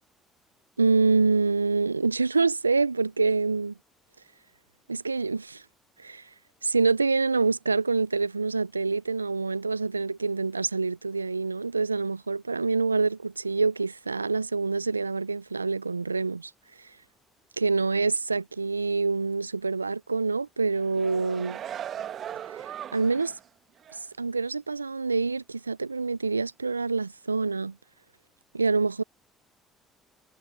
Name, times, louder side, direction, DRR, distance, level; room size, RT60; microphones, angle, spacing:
voice 1, 0.8-3.7 4.9-5.6 6.0-6.2 6.6-16.5 17.6-21.6 22.5-22.6 22.9-23.3 24.2-27.8 28.5-29.0, right 4 dB, 90° right, 0.5 m, -26 dB
sound 1, 20.7-23.4 23.8-24.0, right 10 dB, 50° right, 1.6 m, -38 dB
figure-of-eight pair, 55°, 0 cm